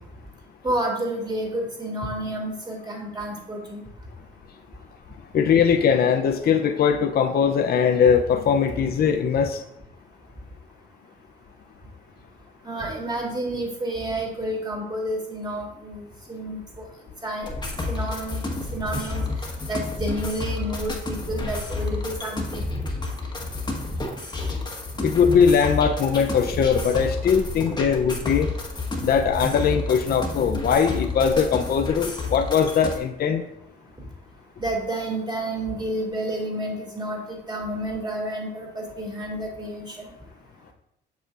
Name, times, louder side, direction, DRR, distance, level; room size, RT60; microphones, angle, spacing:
voice 1, 0.6-3.8 12.6-16.8 17.2-17.5 17.9-18.4 18.7-19.2 19.7-22.7 34.6-40.1, right 1 dB, 20° right, 0 dB, 2.5 m, -30 dB
voice 2, 5.3-9.6 25.0-28.5 29.0-33.4, left 7 dB, 50° left, 5 dB, 0.6 m, -20 dB
sound 1, 17.4-33.0, left 2 dB, 20° left, 1.4 m, -30 dB
8.1 x 6.4 x 2.5 m, 0.81 s
cardioid pair, 90°, 20 cm